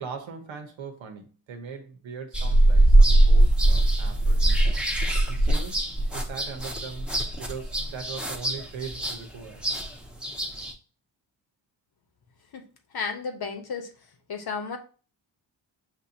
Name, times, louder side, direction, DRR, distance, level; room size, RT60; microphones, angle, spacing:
voice 1, 0.0-4.8 5.3-5.8 6.1-7.1 7.4-9.8, right 6 dB, 85° right, 5 dB, 1.0 m, -40 dB
sound 1, 2.3-10.7, right 1 dB, ahead, 0.9 m, -21 dB
voice 2, 12.9-13.9 14.3-14.8, left 5 dB, 55° left, 5 dB, 1.1 m, -32 dB
6.0 x 2.8 x 2.8 m, 0.37 s
cardioid pair, 70°, 45 cm